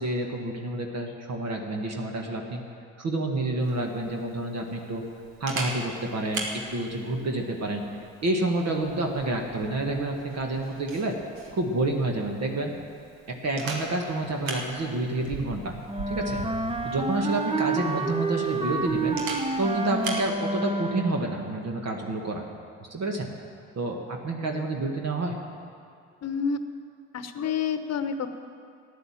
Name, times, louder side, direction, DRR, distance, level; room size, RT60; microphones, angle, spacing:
voice 1, 0.0-2.6 3.0-5.0 5.4-7.8 8.2-11.2 11.5-12.7 13.3-15.7 16.1-16.4 16.8-19.2 19.6-22.5 22.9-23.3 23.8-25.4, right 2 dB, 45° right, 1 dB, 1.8 m, -29 dB
Camera, 3.6-20.3, right 2 dB, 65° right, 2.2 m, -40 dB
Wind instrument woodwind instrument, 15.9-21.3, right 3 dB, 15° right, 1.0 m, -29 dB
voice 2, 26.2-26.6 27.1-28.3, left 6 dB, 45° left, 9 dB, 1.1 m, -28 dB
13.5 x 9.9 x 7.4 m, 2.3 s
hypercardioid pair, 50°, 37 cm